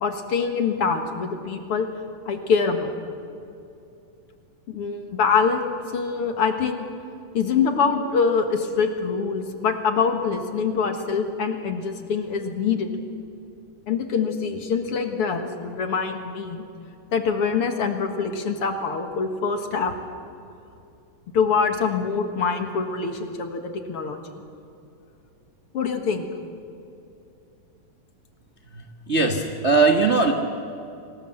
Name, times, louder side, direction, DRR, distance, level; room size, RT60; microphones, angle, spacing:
voice 1, 0.0-1.9 2.3-2.9 4.7-5.6 5.9-6.9 7.3-12.9 13.9-16.6 17.1-19.9 21.3-24.2 25.7-26.3, left 5 dB, 50° left, 6 dB, 2.1 m, -24 dB
voice 2, 29.1-30.3, right 4 dB, 80° right, 2 dB, 0.6 m, -19 dB
26.5 x 19.0 x 7.8 m, 2.6 s
omnidirectional pair, 3.7 m